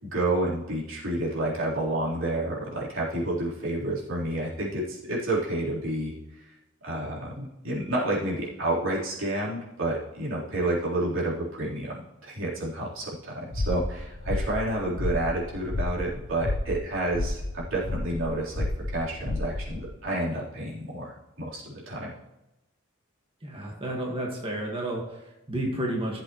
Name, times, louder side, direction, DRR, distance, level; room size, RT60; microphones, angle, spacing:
voice 1, 0.0-6.1 6.8-12.0 12.2-22.1, right 1 dB, 80° right, -6 dB, 3.8 m, -30 dB
sound 1, 13.5-19.9, left 2 dB, 75° left, 1.1 m, -32 dB
voice 2, 23.4-26.2, right 1 dB, 30° right, -2 dB, 1.7 m, -31 dB
15.0 x 7.6 x 3.1 m, 0.96 s
head